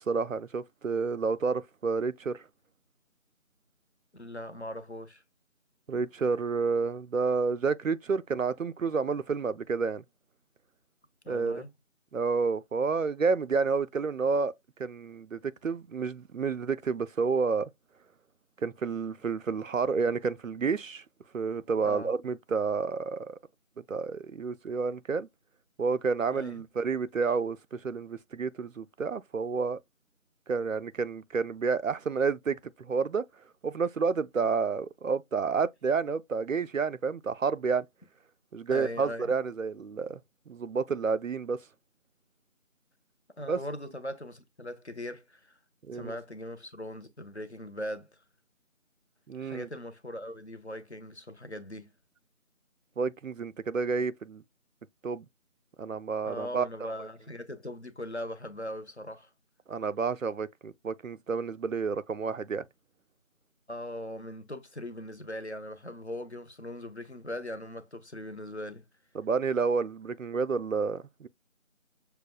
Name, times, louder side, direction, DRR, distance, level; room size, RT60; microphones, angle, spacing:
voice 1, 0.1-2.4 5.9-10.0 11.3-11.6 12.1-14.5 14.8-17.7 18.6-21.0 21.3-23.4 23.9-25.3 25.8-29.8 30.5-33.2 33.6-37.9 38.5-40.2 40.5-41.6 43.5-43.6 45.9-46.2 49.3-49.7 53.0-54.4 55.0-55.2 55.8-56.9 59.7-62.6 69.1-71.3, right 5 dB, 75° right, 0.5 m, -30 dB
voice 2, 4.1-5.2 5.9-6.0 11.2-11.7 21.8-22.1 26.3-26.6 34.4-34.5 38.7-39.3 43.4-45.6 45.9-48.1 49.4-51.9 56.3-59.3 63.7-68.8, left 1 dB, 55° left, 0.8 m, -40 dB
6.7 x 2.3 x 2.3 m
figure-of-eight pair, 180°, 40 cm